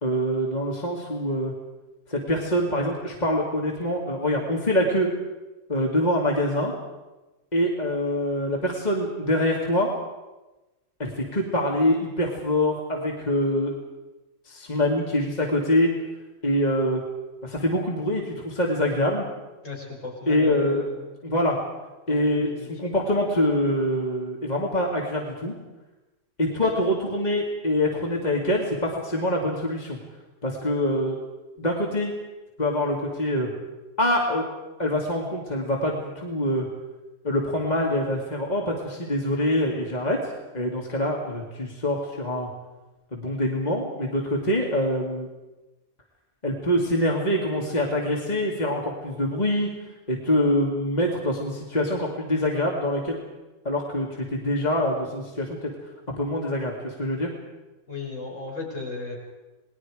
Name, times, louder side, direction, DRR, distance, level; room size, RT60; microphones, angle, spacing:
voice 1, 0.0-1.5 2.1-5.1 5.7-6.7 7.5-9.9 11.0-13.7 14.5-15.9 16.4-17.0 17.4-19.3 20.3-20.9 21.2-21.6 22.1-25.5 26.4-30.0 30.4-31.2 31.6-32.1 32.6-33.5 34.0-34.4 34.8-36.7 37.2-40.2 40.5-42.5 43.1-45.3 46.4-49.7 50.1-53.2 53.6-55.7 56.1-57.3, left 1 dB, 30° left, -1 dB, 2.4 m, -25 dB
voice 2, 19.6-21.0 22.1-22.7 57.9-59.2, left 3 dB, 60° left, -3 dB, 6.3 m, -36 dB
28.5 x 20.0 x 4.9 m, 1.1 s
omnidirectional pair, 1.5 m